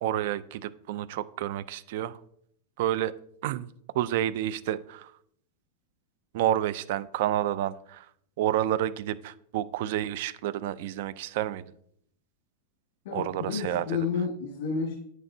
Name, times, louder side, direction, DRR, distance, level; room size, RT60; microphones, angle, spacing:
voice 1, 0.0-2.2 2.8-3.1 3.4-3.7 3.9-5.1 6.3-8.1 8.4-11.6 13.1-14.1, right 12 dB, 60° right, 17 dB, 0.5 m, -29 dB
voice 2, 13.1-14.9, left 5 dB, 65° left, -1 dB, 1.9 m, -30 dB
9.5 x 9.3 x 2.8 m, 0.69 s
supercardioid pair, 150°, 0 cm